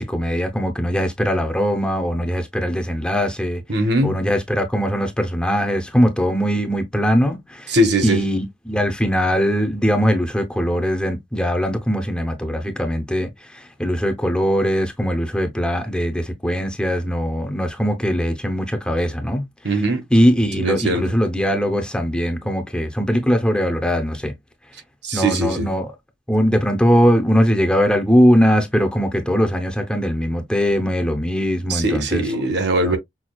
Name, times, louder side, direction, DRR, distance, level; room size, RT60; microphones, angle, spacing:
voice 1, 0.0-3.6 4.0-7.8 8.0-19.5 20.1-24.3 25.1-25.9 26.3-32.2 32.8-33.0, equal, 5° left, 0.6 m, -20 dB
voice 2, 3.7-4.2 7.7-8.2 19.6-20.0 20.6-21.1 25.0-25.7 31.7-33.0, right 1 dB, 60° right, 1.0 m, -20 dB
5.9 x 2.3 x 2.3 m
head